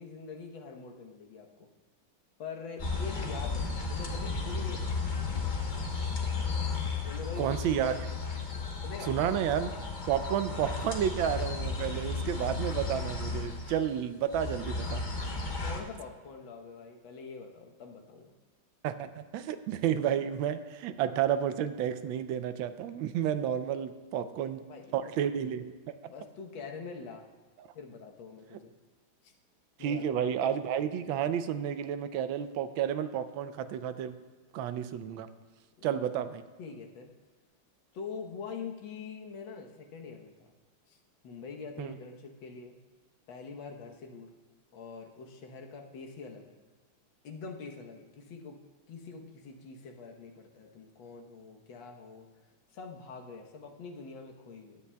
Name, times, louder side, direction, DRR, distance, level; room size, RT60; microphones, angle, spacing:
voice 1, 0.0-1.7 2.4-5.1 7.0-7.8 8.8-9.1 15.6-18.3 23.9-24.9 26.1-27.3 27.7-28.7 29.2-29.3 29.8-30.2 35.8-36.1 36.6-37.1 37.9-40.5 40.9-41.0 41.2-42.8 43.3-44.3 44.7-46.6 47.2-48.6 48.9-52.3 52.7-54.8, left 5 dB, 70° left, 2 dB, 1.8 m, -44 dB
sound 1, 2.8-14.0 14.3-15.8, left 4 dB, 40° left, 0.7 m, -34 dB
voice 2, 7.4-7.9 9.0-9.7 10.1-15.0 18.8-24.6 24.9-25.7 27.6-27.7 28.5-28.6 29.8-34.1 34.5-35.3 35.8-36.4 41.8-41.9, right 9 dB, 75° right, 11 dB, 1.3 m, -31 dB
16.5 x 10.0 x 2.2 m, 1.4 s
omnidirectional pair, 2.3 m